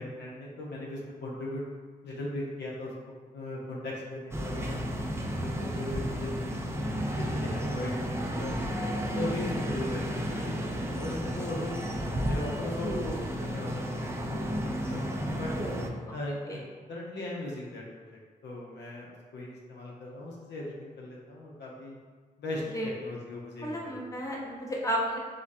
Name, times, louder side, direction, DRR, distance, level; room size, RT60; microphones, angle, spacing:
voice 1, 0.0-1.6 2.0-2.9 3.3-4.8 5.4-8.0 8.3-8.5 9.1-10.5 10.9-11.8 12.2-15.5 16.1-16.6 16.9-17.8 18.1-22.0 22.4-22.6 23.0-24.1, left 1 dB, 75° left, -4 dB, 0.6 m, -38 dB
sound 1, 4.3-15.9, equal, 15° right, 0.4 m, -32 dB
voice 2, 6.8-7.2 16.3-16.6 22.7-22.9 23.6-25.2, equal, 20° left, -3 dB, 0.8 m, -33 dB
3.2 x 2.2 x 2.5 m, 1.4 s
supercardioid pair, 45°, 18 cm